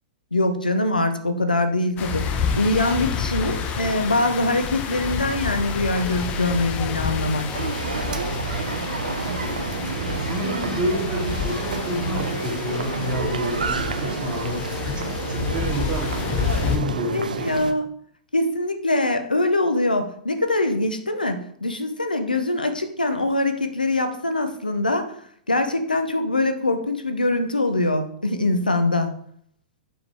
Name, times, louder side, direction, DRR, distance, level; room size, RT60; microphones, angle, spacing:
voice 1, 0.3-2.2 2.5-7.4 17.1-17.9 18.3-25.2 25.5-29.1, left 2 dB, 85° left, 8 dB, 1.0 m, -23 dB
sound 1, 2.0-16.8, left 6 dB, 30° left, 1.2 m, -29 dB
sound 2, 7.5-17.7, right 5 dB, 70° right, 0.8 m, -29 dB
voice 2, 10.1-17.5, left 1 dB, 25° right, 0 dB, 2.6 m, -30 dB
8.8 x 7.2 x 3.5 m, 0.63 s
figure-of-eight pair, 105°, 4 cm